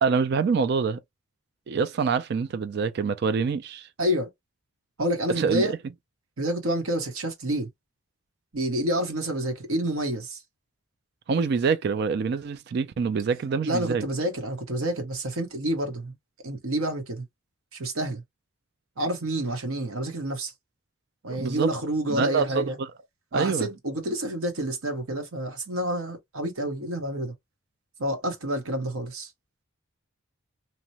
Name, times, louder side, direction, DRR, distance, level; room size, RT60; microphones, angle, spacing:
voice 1, 0.0-1.0 1.7-3.9 5.4-5.8 11.3-14.0 21.3-21.7 22.1-22.9 23.3-23.7, right 5 dB, 50° right, 0.3 m, -25 dB
voice 2, 4.0-4.3 5.0-5.7 6.4-7.7 8.5-10.4 13.6-16.2 16.4-17.3 17.7-18.2 19.0-20.5 21.2-22.8 23.3-27.3 28.0-29.3, right 1 dB, 80° right, 1.0 m, -28 dB
2.9 x 2.1 x 2.8 m
head